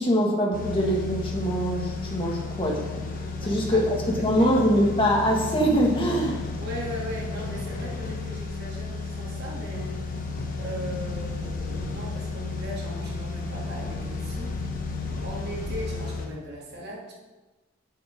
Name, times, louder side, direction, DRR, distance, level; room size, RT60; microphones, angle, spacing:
voice 1, 0.0-3.1 3.4-6.5, equal, 25° left, -1 dB, 1.8 m, -23 dB
sound 1, 0.5-16.3, left 3 dB, 45° left, 1.2 m, -33 dB
voice 2, 3.4-3.8 4.1-4.4 6.6-10.0 10.5-14.6 15.2-17.1, equal, 55° right, -3 dB, 2.2 m, -38 dB
7.6 x 7.0 x 5.2 m, 1.2 s
head